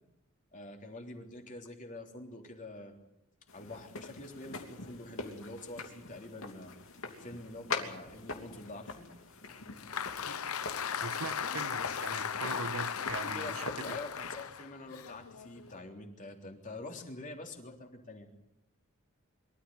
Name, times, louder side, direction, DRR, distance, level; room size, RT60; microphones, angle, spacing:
voice 1, 0.5-2.9 3.5-6.7 7.2-9.1 9.7-9.9 13.3-18.3, left 2 dB, 40° left, 2 dB, 3.5 m, -46 dB
sound 1, 3.5-14.3, left 3 dB, 70° left, 3.0 m, -44 dB
Applause, 9.5-15.8, left 7 dB, 85° left, 0.9 m, -37 dB
voice 2, 11.0-14.0, right 4 dB, 85° right, 10 dB, 1.4 m, -41 dB
24.5 x 13.5 x 9.5 m, 0.86 s
head